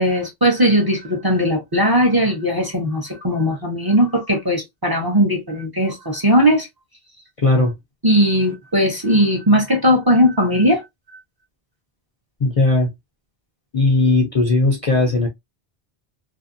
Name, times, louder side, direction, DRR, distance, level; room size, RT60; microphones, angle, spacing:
voice 1, 0.0-6.7 8.0-11.2, equal, 25° right, 0.7 m, -18 dB
voice 2, 7.4-7.7 12.4-12.9 13.7-15.3, left 2 dB, 45° left, 0.5 m, -17 dB
2.6 x 2.5 x 2.5 m
omnidirectional pair, 1.1 m